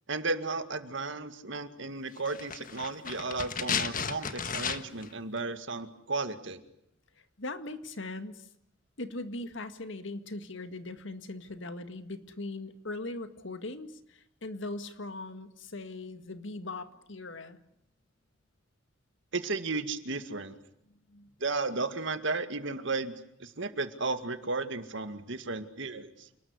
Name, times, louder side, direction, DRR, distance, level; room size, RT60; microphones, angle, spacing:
voice 1, 0.1-6.6 19.3-20.6 21.4-26.3, right 3 dB, 65° right, 9 dB, 2.2 m, -34 dB
sound 1, 2.3-5.1 5.4-5.5, left 6 dB, 45° left, 1.5 m, -34 dB
voice 2, 7.2-8.5 9.0-17.6 20.9-21.3, left 2 dB, 65° left, 10 dB, 2.0 m, -40 dB
29.0 x 20.0 x 9.8 m, 0.75 s
head